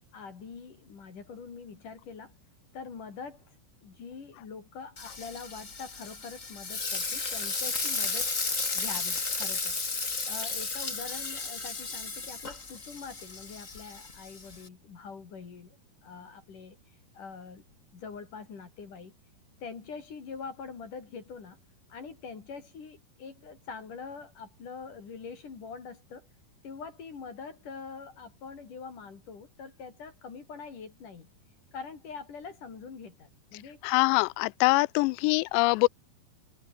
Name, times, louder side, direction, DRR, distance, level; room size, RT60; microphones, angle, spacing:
voice 1, 0.1-2.3 2.7-3.5 3.8-8.3 8.7-9.7 10.3-16.8 17.1-17.6 17.9-19.1 19.6-21.6 21.9-26.3 26.6-31.3 31.7-33.8, left 5 dB, 50° left, 5.1 m, -44 dB
Frying (food), 5.0-14.7, left 4 dB, 20° left, 2.5 m, -34 dB
voice 2, 33.8-35.9, left 24 dB, 90° left, 2.8 m, -24 dB
omnidirectional pair, 4.9 m